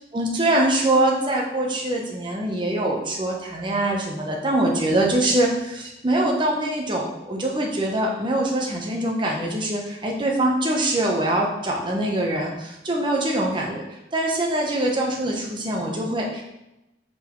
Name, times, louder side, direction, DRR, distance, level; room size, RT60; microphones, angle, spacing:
voice 1, 0.1-13.8 14.1-16.4, right 1 dB, 25° right, -1 dB, 0.9 m, -23 dB
5.7 x 4.1 x 4.6 m, 0.92 s
head